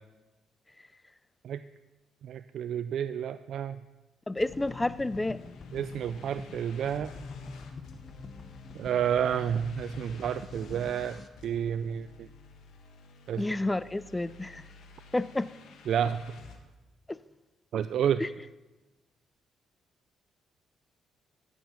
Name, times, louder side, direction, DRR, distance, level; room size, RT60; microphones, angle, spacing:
voice 1, 2.2-3.8 5.7-7.1 8.7-12.3 13.3-13.5 15.9-16.2 17.7-18.2, right 9 dB, 70° right, 12 dB, 0.3 m, -30 dB
voice 2, 4.3-5.4 13.4-14.6 15.1-15.5 17.1-17.2 18.2-18.3, left 2 dB, 15° left, 18 dB, 0.4 m, -30 dB
sound 1, 4.4-16.6, left 4 dB, 80° left, 1.5 m, -52 dB
sound 2, 4.4-11.3, left 4 dB, 40° left, 0.9 m, -45 dB
14.5 x 7.2 x 6.0 m, 1.1 s
cardioid pair, 90°, 0 cm